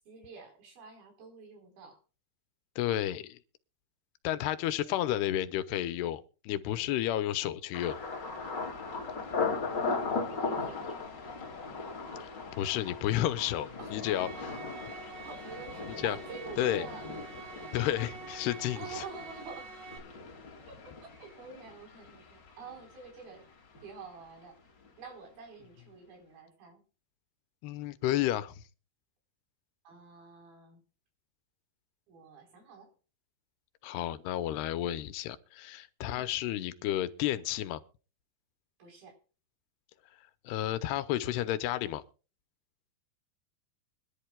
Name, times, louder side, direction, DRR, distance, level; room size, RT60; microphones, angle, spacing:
voice 1, 0.1-2.0 4.6-5.3 10.3-10.8 13.8-13.9 15.3-17.1 18.8-19.8 21.0-23.5 23.8-24.6 25.0-26.8 29.8-30.8 32.1-32.9 36.1-36.3 38.8-39.2, right 5 dB, 65° right, 5.9 m, -48 dB
voice 2, 2.8-3.4 4.2-8.0 12.2-12.3 12.6-14.6 16.0-16.2 16.6-16.9 17.7-19.0 27.6-28.6 33.8-37.8 40.4-42.0, left 13 dB, 85° left, 2.9 m, -31 dB
Thunder, 7.7-23.5 23.7-24.4 24.8-25.1, left 4 dB, 35° left, 2.2 m, -38 dB
sound 1, 13.9-20.0, right 5 dB, 85° right, 3.7 m, -47 dB
25.0 x 11.0 x 2.3 m
omnidirectional pair, 4.6 m